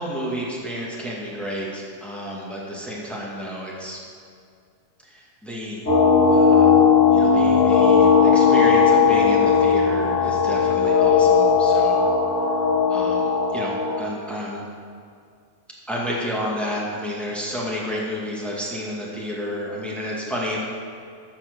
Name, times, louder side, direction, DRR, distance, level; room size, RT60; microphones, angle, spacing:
voice 1, 0.0-4.0 5.0-5.9 6.3-6.7 7.1-12.0 12.9-14.6 15.9-20.6, equal, ahead, -5 dB, 1.1 m, -31 dB
sound 1, 5.9-14.0, left 6 dB, 25° left, 2.1 m, -17 dB
14.0 x 5.9 x 6.8 m, 2.2 s
omnidirectional pair, 3.6 m